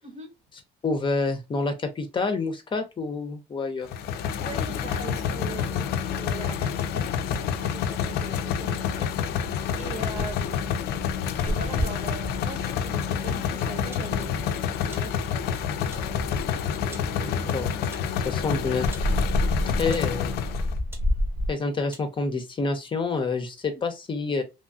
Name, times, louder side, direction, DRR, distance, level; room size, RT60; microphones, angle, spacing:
voice 1, 0.8-3.9 5.4-5.5 17.2-17.7 18.2-19.2 19.7-20.4 21.5-24.4, left 3 dB, 30° left, 0.6 m, -28 dB
sound 1, 3.9-20.8, left 8 dB, 70° left, 0.4 m, -28 dB
voice 2, 4.4-9.1 9.4-9.5 9.8-11.2 11.4-15.7 16.7-17.7 23.7-23.8, right 4 dB, 40° right, 0.9 m, -41 dB
sound 2, 9.3-21.5, left 1 dB, 70° right, 1.1 m, -32 dB
sound 3, 13.9-14.1 14.9-15.1 15.9-16.1 16.9-17.1 17.9-18.1 18.9-19.1 19.8-20.1 20.9-21.1 21.9-22.1, right 1 dB, 15° right, 0.8 m, -46 dB
3.0 x 2.3 x 2.5 m
cardioid pair, 110°, 17 cm